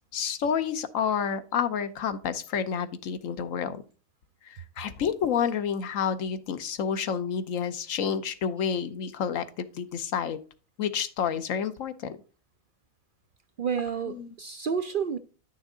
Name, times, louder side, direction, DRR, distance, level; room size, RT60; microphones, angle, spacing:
voice 1, 0.1-3.8 4.4-10.4 10.8-12.2 14.0-14.3, left 7 dB, 70° left, 1.1 m, -29 dB
voice 2, 13.6-15.2, right 6 dB, 65° right, 0.5 m, -30 dB
10.5 x 6.3 x 3.7 m
omnidirectional pair, 1.4 m